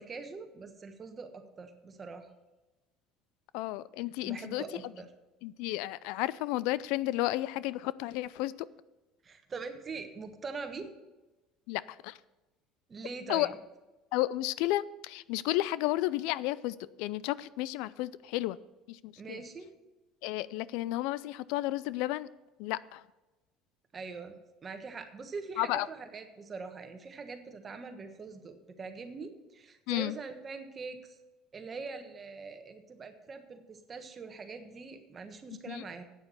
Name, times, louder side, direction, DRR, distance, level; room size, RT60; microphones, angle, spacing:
voice 1, 0.0-2.3 4.2-5.1 9.2-10.9 12.9-13.5 19.2-19.7 23.9-31.2 31.5-36.0, right 4 dB, 30° right, 7 dB, 1.4 m, -43 dB
voice 2, 3.5-4.6 5.4-8.5 11.7-12.2 13.3-13.5 14.1-18.6 18.9-19.4 20.2-22.3 22.6-23.0 25.6-25.9 29.9-30.1 35.5-35.8, left 16 dB, 80° left, 19 dB, 0.3 m, -32 dB
8.8 x 7.0 x 7.6 m, 1.1 s
supercardioid pair, 110°, 0 cm